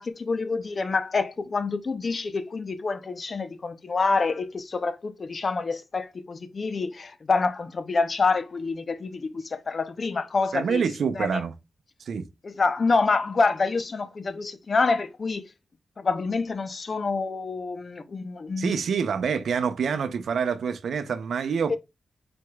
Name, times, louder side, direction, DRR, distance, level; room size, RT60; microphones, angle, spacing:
voice 1, 0.0-10.9 11.2-11.4 12.4-15.4 16.0-18.8 21.7-21.8, left 4 dB, 45° left, 0.5 m, -27 dB
voice 2, 10.5-11.5 12.0-12.3 18.6-21.8, right 6 dB, 75° right, 0.5 m, -26 dB
4.7 x 4.3 x 2.2 m
cardioid pair, 90°, 0 cm